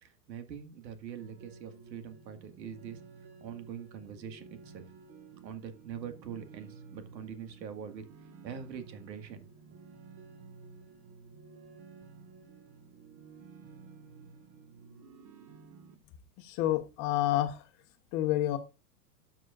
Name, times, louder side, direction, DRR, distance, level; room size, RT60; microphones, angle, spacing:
voice 1, 0.0-3.0 3.4-4.8 5.4-8.0 8.4-9.8, right 8 dB, 85° right, 8 dB, 2.0 m, -43 dB
sound 1, 1.2-16.0, right 5 dB, 30° right, 1.5 m, -53 dB
voice 2, 16.4-17.6 18.1-18.6, left 14 dB, 30° left, 8 dB, 1.1 m, -29 dB
13.0 x 6.2 x 2.5 m, 0.28 s
supercardioid pair, 160°, 50 cm